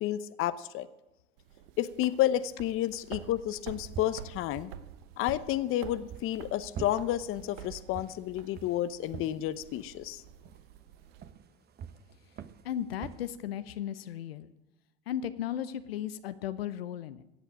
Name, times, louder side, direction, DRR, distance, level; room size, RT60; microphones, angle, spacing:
voice 1, 0.0-0.9 1.8-4.7 5.2-10.2, left 13 dB, 45° left, 14 dB, 0.8 m, -31 dB
sound 1, 1.4-11.3, right 11 dB, 75° right, 0.9 m, -49 dB
sound 2, 3.7-13.2, right 8 dB, 35° right, 1.0 m, -47 dB
voice 2, 12.6-14.5 15.1-17.2, left 10 dB, 90° left, 12 dB, 0.8 m, -35 dB
16.0 x 8.2 x 7.4 m, 0.95 s
hypercardioid pair, 95°, 29 cm